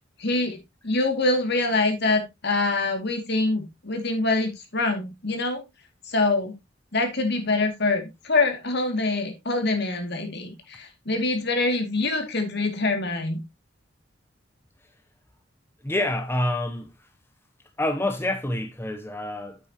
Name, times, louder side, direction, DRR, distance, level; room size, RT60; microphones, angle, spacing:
voice 1, 0.2-0.6 0.8-5.6 6.1-6.5 6.9-13.4, left 2 dB, 60° left, 2.4 m, -25 dB
voice 2, 15.8-16.9 17.8-19.6, left 1 dB, 10° left, 0.7 m, -27 dB
8.8 x 8.7 x 2.9 m
head